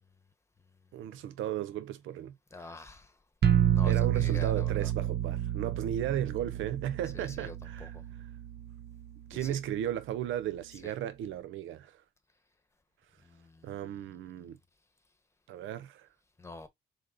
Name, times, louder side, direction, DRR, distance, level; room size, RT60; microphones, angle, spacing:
voice 1, 0.9-2.3 2.6-2.7 3.8-8.0 9.3-12.0 13.6-14.6 15.5-16.1, right 11 dB, 85° right, 0.7 m, -35 dB
voice 2, 2.5-3.1 3.8-4.9 7.1-7.5 7.8-8.0 9.3-9.6 10.8-10.9 13.3-13.8 16.4-16.7, left 3 dB, 15° left, 1.1 m, -46 dB
sound 1, 3.4-9.2, right 11 dB, 55° right, 0.8 m, -30 dB
3.8 x 3.5 x 3.8 m
cardioid pair, 90°, 20 cm